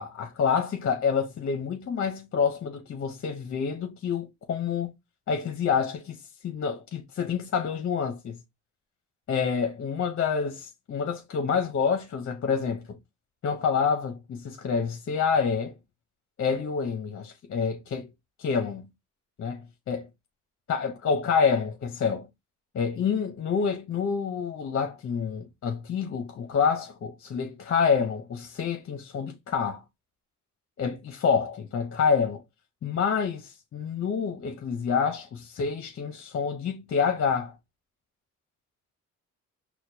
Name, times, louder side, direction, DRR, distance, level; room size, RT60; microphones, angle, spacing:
voice 1, 0.0-4.9 5.3-6.2 6.4-8.4 9.3-13.0 13.4-15.8 16.4-18.1 18.4-18.9 19.4-20.1 20.7-22.3 22.7-29.8 30.8-32.4 32.8-37.5, left 6 dB, 45° left, 0.7 m, -27 dB
4.3 x 2.2 x 2.7 m
cardioid pair, 90°, 30 cm